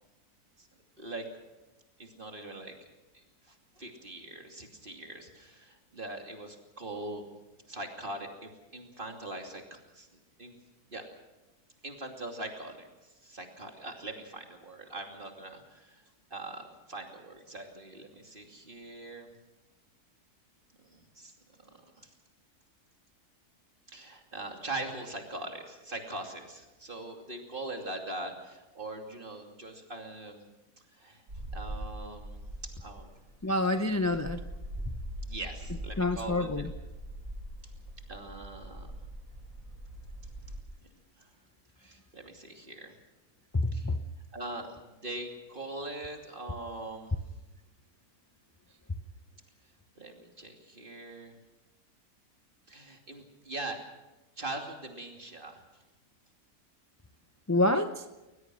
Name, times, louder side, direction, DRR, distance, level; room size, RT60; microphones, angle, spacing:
voice 1, 2.0-2.7 3.1-7.2 7.7-10.1 10.4-10.5 10.9-11.1 11.8-16.0 16.3-19.3 20.8-21.3 21.6-22.1 23.9-30.4 30.9-31.2 31.5-33.1 33.7-33.8 35.2-36.7 38.1-38.9 41.2-41.3 41.8-42.9 43.7-43.9 44.3-47.1 50.0-51.4 52.7-53.8 54.4-55.8, right 2 dB, 35° right, 3 dB, 2.9 m, -42 dB
sound 1, 31.3-40.6, right 1 dB, 60° right, 6.7 m, -42 dB
voice 2, 33.4-34.4 34.8-35.0 36.0-36.7 43.5-44.0 57.5-58.1, left 2 dB, 25° left, 8 dB, 0.4 m, -27 dB
21.0 x 20.5 x 6.3 m, 1.1 s
omnidirectional pair, 1.6 m